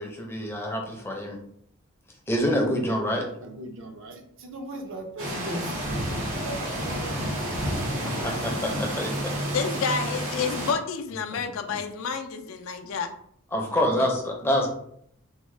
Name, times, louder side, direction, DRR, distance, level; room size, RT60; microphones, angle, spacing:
voice 1, 0.0-1.4 2.3-3.3 8.0-9.3 11.3-11.4 11.7-11.8 13.5-14.7, equal, 10° left, 1 dB, 0.5 m, -27 dB
voice 2, 3.4-5.8 6.3-7.6, right 1 dB, 60° right, 4 dB, 0.6 m, -38 dB
sound 1, 5.2-10.7, equal, 75° right, 1.1 m, -30 dB
voice 3, 9.5-13.1 13.7-13.8, left 5 dB, 65° left, 7 dB, 0.4 m, -29 dB
3.5 x 2.1 x 3.1 m, 0.69 s
head